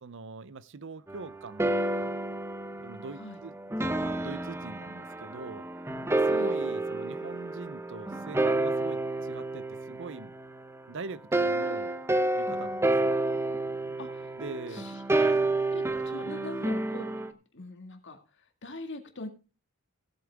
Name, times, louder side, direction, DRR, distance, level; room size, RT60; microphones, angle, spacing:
voice 1, 0.0-2.2 2.8-5.7 6.1-10.3 10.9-12.0 12.4-13.2 14.4-15.4, right 4 dB, 60° right, 0.7 m, -43 dB
sound 1, 1.1-10.8 11.3-17.3, right 2 dB, 10° right, 0.7 m, -30 dB
voice 2, 6.2-6.6 11.6-11.8 14.0-14.3 14.7-15.4 15.7-17.1 17.5-18.2 18.6-19.3, left 2 dB, 60° left, 2.0 m, -42 dB
16.5 x 8.3 x 3.5 m
head